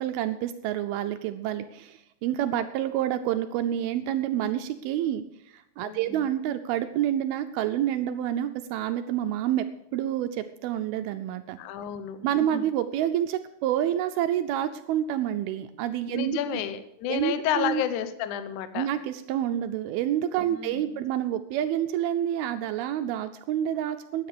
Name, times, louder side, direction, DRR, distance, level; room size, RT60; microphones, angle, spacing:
voice 1, 0.0-9.7 9.9-11.6 12.2-16.4 17.1-17.8 18.8-24.3, right 11 dB, 80° right, 9 dB, 2.3 m, -28 dB
voice 2, 5.8-6.3 11.6-12.3 12.5-12.6 16.1-18.9 20.4-21.1, left 9 dB, 80° left, 11 dB, 1.7 m, -31 dB
13.0 x 9.4 x 6.7 m, 0.83 s
omnidirectional pair, 4.7 m